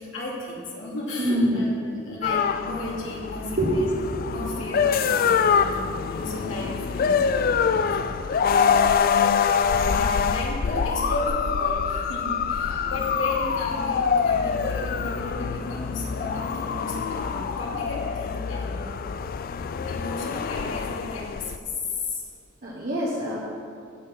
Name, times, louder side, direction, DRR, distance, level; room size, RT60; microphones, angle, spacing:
voice 1, 0.0-3.9 4.2-7.6 7.9-8.0 8.5-8.9 9.7-18.9 19.8-21.4 21.8-22.2, left 2 dB, 70° left, -5 dB, 2.7 m, -34 dB
voice 2, 1.2-1.6 3.6-3.8 12.7-12.8 22.6-23.4, equal, 50° right, -6 dB, 1.3 m, -25 dB
sound 1, 2.2-21.6, left 6 dB, 45° left, 0.3 m, -25 dB
16.5 x 6.5 x 3.7 m, 2.3 s
head